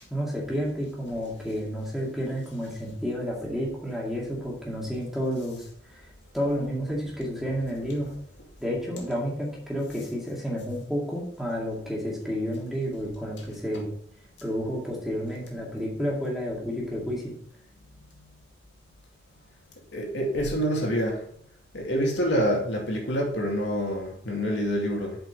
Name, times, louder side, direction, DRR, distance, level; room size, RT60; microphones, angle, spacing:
voice 1, 0.1-6.1 6.3-8.1 8.6-13.9 14.4-17.3, equal, ahead, 2.2 m, -30 dB
voice 2, 19.9-21.2 21.7-25.2, equal, 85° left, 2.3 m, -26 dB
7.7 x 5.2 x 5.5 m
head